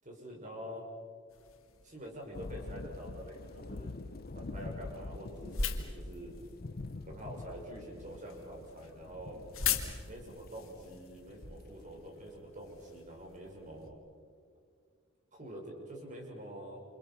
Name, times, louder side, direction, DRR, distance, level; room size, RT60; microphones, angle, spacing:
voice 1, 0.0-0.9 1.8-4.0 4.3-6.3 7.1-9.4 10.1-14.0 15.3-16.8, equal, 35° right, 0 dB, 6.2 m, -46 dB
sound 1, 1.3-13.9, left 6 dB, 75° left, 2.7 m, -42 dB
sound 2, 2.3-12.4, left 2 dB, 45° left, 0.6 m, -46 dB
29.0 x 27.5 x 5.9 m, 2.1 s
head